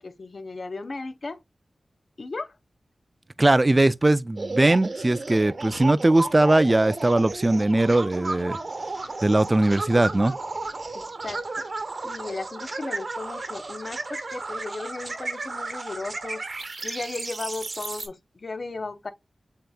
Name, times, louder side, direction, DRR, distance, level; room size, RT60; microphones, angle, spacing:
voice 1, 0.0-1.4 2.2-2.6 10.9-11.7 12.0-16.4 16.8-19.1, left 3 dB, 60° left, 0.6 m, -35 dB
voice 2, 3.4-8.6 9.2-10.3, right 2 dB, 30° right, 0.3 m, -20 dB
sound 1, 4.4-18.1, right 3 dB, 55° right, 0.9 m, -33 dB
7.7 x 2.8 x 2.3 m
cardioid pair, 45°, 0 cm